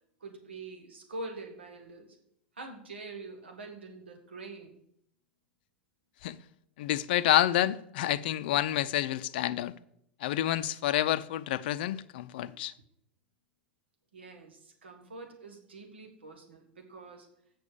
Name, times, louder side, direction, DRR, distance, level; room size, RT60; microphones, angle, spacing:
voice 1, 0.2-2.2 2.5-4.8 14.1-17.3, right 2 dB, 80° right, 1.7 m, -45 dB
voice 2, 6.8-9.7 10.2-12.7, left 13 dB, 60° left, 0.5 m, -28 dB
7.6 x 7.0 x 6.9 m
hypercardioid pair, 90°, 6 cm